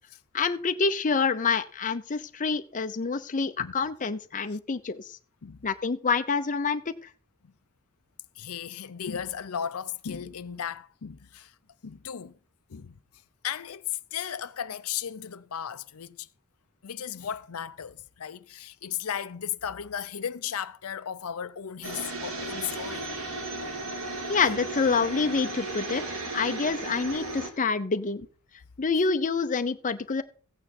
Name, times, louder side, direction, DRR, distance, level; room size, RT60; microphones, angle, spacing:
voice 1, 0.3-5.2 5.6-6.9 24.3-26.0 26.3-28.3 28.8-30.2, left 4 dB, 35° left, 0.7 m, -27 dB
voice 2, 8.4-11.5 11.8-12.3 12.7-12.9 13.4-16.3 16.8-23.1, left 8 dB, 90° left, 0.6 m, -35 dB
sound 1, 21.8-27.5, right 2 dB, 70° right, 2.6 m, -35 dB
15.0 x 8.9 x 4.3 m
head